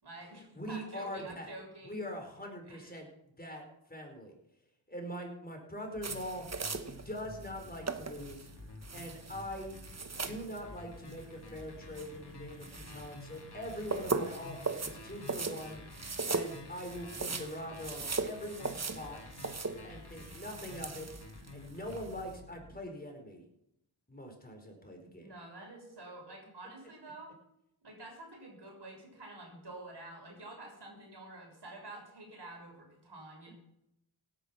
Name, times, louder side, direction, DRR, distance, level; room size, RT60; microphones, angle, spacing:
voice 1, 0.0-2.0 2.7-2.9 25.0-27.4 27.8-33.5, right 2 dB, 55° right, 0 dB, 6.7 m, -49 dB
voice 2, 0.6-1.5 1.8-3.1 3.4-3.6 3.9-4.3 4.9-6.5 7.0-8.5 8.9-9.8 10.2-15.8 16.3-19.2 19.8-21.1 21.5-23.4 24.1-25.3, equal, 20° left, 2 dB, 4.9 m, -43 dB
sound 1, 5.9-22.7, left 2 dB, 55° left, 3.0 m, -51 dB
sound 2, 6.0-22.4, right 4 dB, 35° right, 1.3 m, -40 dB
17.0 x 10.5 x 6.2 m, 0.81 s
cardioid pair, 60°, 47 cm